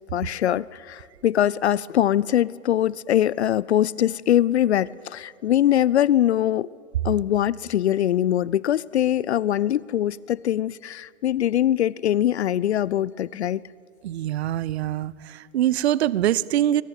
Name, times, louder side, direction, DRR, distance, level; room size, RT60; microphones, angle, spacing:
voice 1, 0.1-6.7 7.0-13.6, left 11 dB, 55° left, 0.5 m, -22 dB
voice 2, 14.0-16.8, right 12 dB, 50° right, 0.8 m, -24 dB
22.0 x 20.5 x 9.5 m
figure-of-eight pair, 120°, 41 cm